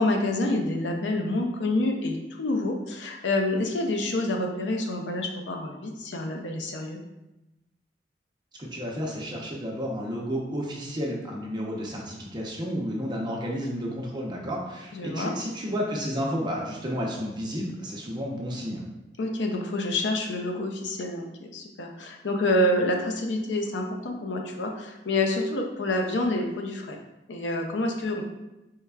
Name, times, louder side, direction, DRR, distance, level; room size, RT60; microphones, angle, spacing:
voice 1, 0.0-7.0 14.9-15.3 19.2-21.3 21.5-27.0 27.3-28.2, left 1 dB, 80° left, 2 dB, 0.6 m, -27 dB
voice 2, 8.6-18.8, equal, 25° right, -2 dB, 0.8 m, -31 dB
4.6 x 3.3 x 2.3 m, 0.96 s
head